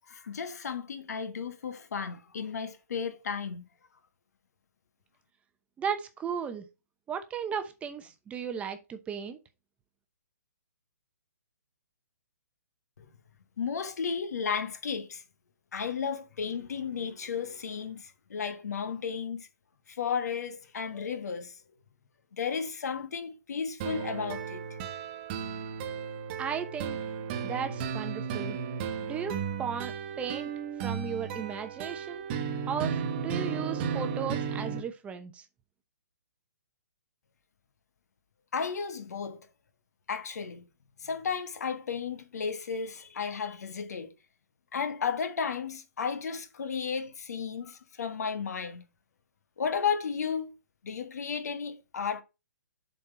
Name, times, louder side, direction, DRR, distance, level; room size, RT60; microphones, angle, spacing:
voice 1, 0.1-3.6 13.0-13.1 13.6-15.2 15.7-19.5 19.9-21.5 22.4-24.6 38.5-39.5 40.1-40.6 41.0-44.1 44.7-48.8 49.6-50.5 50.8-52.2, left 6 dB, 65° left, 1.4 m, -33 dB
voice 2, 5.8-6.7 7.1-9.4 26.4-27.0 27.4-28.6 29.0-30.5 30.8-32.2 32.7-35.4, right 7 dB, 15° right, 0.8 m, -35 dB
sound 1, 23.8-34.8, right 7 dB, 35° right, 1.1 m, -34 dB
7.4 x 4.2 x 4.3 m
figure-of-eight pair, 135°, 9 cm